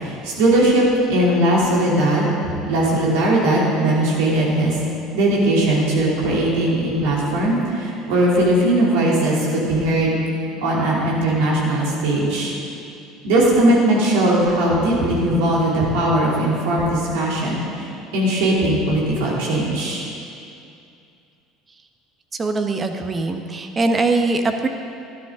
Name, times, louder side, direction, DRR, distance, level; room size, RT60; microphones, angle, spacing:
voice 1, 0.0-2.3 2.7-4.7 5.1-10.2 10.6-12.5 13.2-20.0, right 1 dB, 70° right, -5 dB, 3.0 m, -19 dB
voice 2, 22.4-24.7, right 3 dB, 30° right, 5 dB, 1.1 m, -21 dB
12.5 x 11.5 x 3.8 m, 2.5 s
hypercardioid pair, 70°, 0 cm